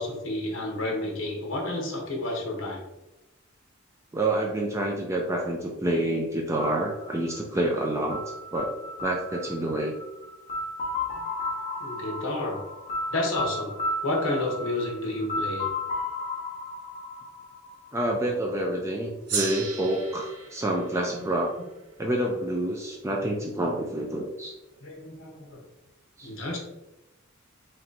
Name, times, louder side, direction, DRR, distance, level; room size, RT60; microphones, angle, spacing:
voice 1, 0.0-2.8 11.8-12.6 13.1-13.7 14.0-15.7 21.1-21.3 24.8-25.6 26.2-26.6, left 2 dB, 60° left, 0 dB, 1.0 m, -30 dB
voice 2, 4.1-8.2 8.5-8.7 9.0-9.9 17.9-21.5 22.0-24.5 26.2-26.3, right 1 dB, 15° right, 0 dB, 0.3 m, -28 dB
sound 1, 6.6-18.4, left 2 dB, 35° left, 1.1 m, -34 dB
Gong, 19.3-24.0, right 5 dB, 90° right, 0.8 m, -37 dB
3.2 x 2.9 x 3.9 m, 0.97 s
head